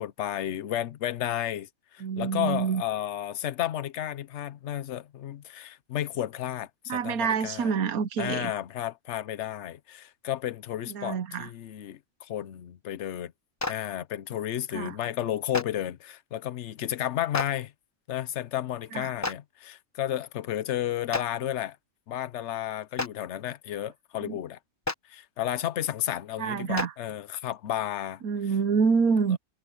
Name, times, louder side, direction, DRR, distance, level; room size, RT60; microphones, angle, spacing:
voice 1, 0.0-7.7 8.2-13.3 13.7-17.7 18.1-21.8 22.1-24.6 25.1-28.2, left 12 dB, 60° left, 1.0 m, -32 dB
voice 2, 2.0-2.8 6.9-8.5 10.9-11.5 14.7-15.0 18.9-19.1 24.2-24.4 26.4-26.9 28.2-29.4, right 6 dB, 90° right, 1.4 m, -27 dB
Clapping, 13.6-13.7 15.5-15.6 17.3-17.5 19.2-19.3 21.1-21.2 22.9-23.1 24.8-24.9 26.7-26.9, left 2 dB, 15° left, 0.7 m, -29 dB
omnidirectional pair, 1.5 m